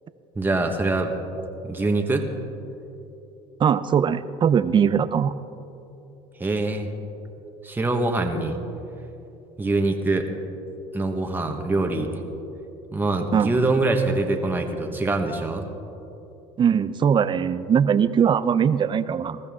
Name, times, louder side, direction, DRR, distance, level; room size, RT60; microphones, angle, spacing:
voice 1, 0.3-1.1 1.6-2.3 6.4-6.9 7.6-8.6 9.6-10.3 10.9-12.1 12.9-15.7, right 2 dB, 15° right, 3 dB, 1.4 m, -24 dB
voice 2, 3.6-5.3 13.3-13.5 16.6-19.4, right 7 dB, 30° right, 14 dB, 0.6 m, -20 dB
20.0 x 14.0 x 3.7 m, 2.9 s
supercardioid pair, 100°, 15 cm